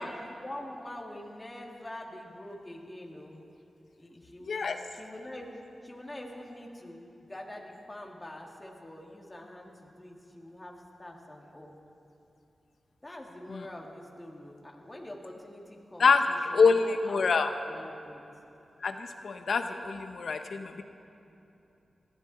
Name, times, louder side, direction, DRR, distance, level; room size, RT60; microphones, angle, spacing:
voice 1, 0.0-3.4 4.0-4.5 4.9-11.7 13.0-16.1 16.5-17.2 17.7-18.2, left 1 dB, 20° left, -1 dB, 2.7 m, -45 dB
voice 2, 4.4-4.8 13.5-13.7 16.0-16.2 16.5-17.5 18.8-20.8, left 4 dB, 75° left, 7 dB, 1.0 m, -26 dB
21.0 x 15.0 x 4.4 m, 2.9 s
cardioid pair, 55°, 0 cm